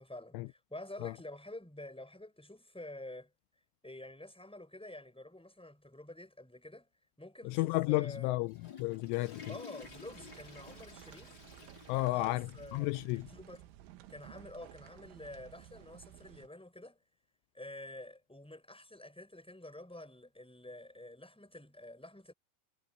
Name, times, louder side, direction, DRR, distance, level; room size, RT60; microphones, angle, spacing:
voice 1, 0.0-3.3 3.8-6.9 7.2-8.4 9.5-11.4 11.8-13.6 14.1-17.0 17.5-22.3, left 1 dB, ahead, 5.8 m, -49 dB
voice 2, 7.5-9.5 11.9-13.3, left 21 dB, 85° left, 3.0 m, -33 dB
Water / Toilet flush, 8.2-13.2 13.6-13.7 14.4-14.5 15.8-15.9, left 6 dB, 25° left, 4.4 m, -53 dB
sound 1, 9.8-16.5, right 13 dB, 80° right, 3.6 m, -55 dB
omnidirectional pair, 5.8 m